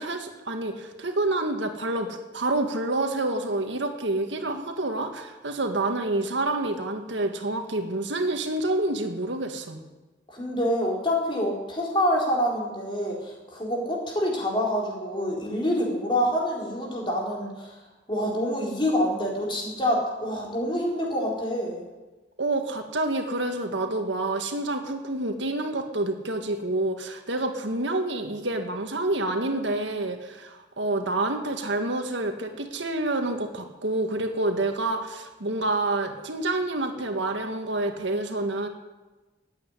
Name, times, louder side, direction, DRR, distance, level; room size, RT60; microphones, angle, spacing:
voice 1, 0.0-9.8 22.4-38.7, right 2 dB, 85° right, 5 dB, 1.9 m, -28 dB
voice 2, 10.3-17.7 18.1-21.8, equal, 25° left, -2 dB, 4.2 m, -26 dB
15.0 x 9.2 x 9.8 m, 1.2 s
head